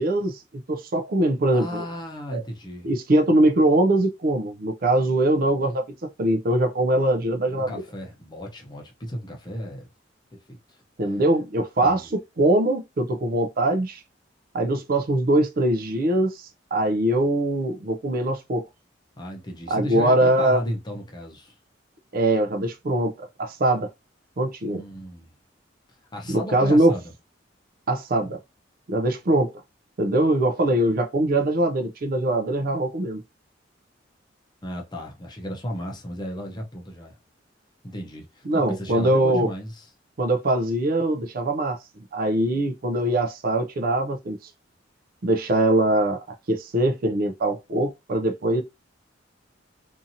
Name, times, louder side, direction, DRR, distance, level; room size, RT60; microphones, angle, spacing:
voice 1, 0.0-1.8 2.3-2.4 2.8-7.8 11.0-14.0 14.5-18.6 19.7-20.6 22.1-23.9 24.4-24.8 26.3-26.9 27.9-28.4 28.9-29.5 30.0-33.2 38.5-39.5 40.2-41.8 42.1-44.4 45.2-48.6, right 1 dB, 50° right, 0.5 m, -22 dB
voice 2, 1.5-2.9 7.5-9.9 10.3-10.8 11.8-12.1 19.2-21.5 24.7-25.3 26.1-27.1 34.6-37.2 37.8-39.9, equal, 25° left, 0.7 m, -34 dB
2.8 x 2.5 x 2.7 m
head